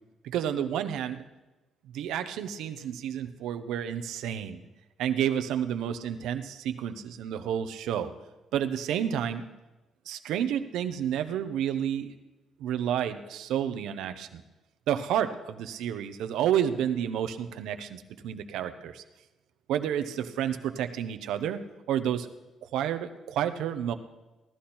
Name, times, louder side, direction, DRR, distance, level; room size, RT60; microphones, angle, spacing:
voice 1, 0.2-1.2 1.9-4.6 5.0-8.1 8.5-9.5 10.1-12.1 12.6-14.4 14.9-19.0 19.7-21.6 21.9-22.3 22.6-23.9, right 9 dB, 85° right, 8 dB, 0.8 m, -30 dB
16.5 x 11.5 x 4.3 m, 1.1 s
cardioid pair, 90°, 0 cm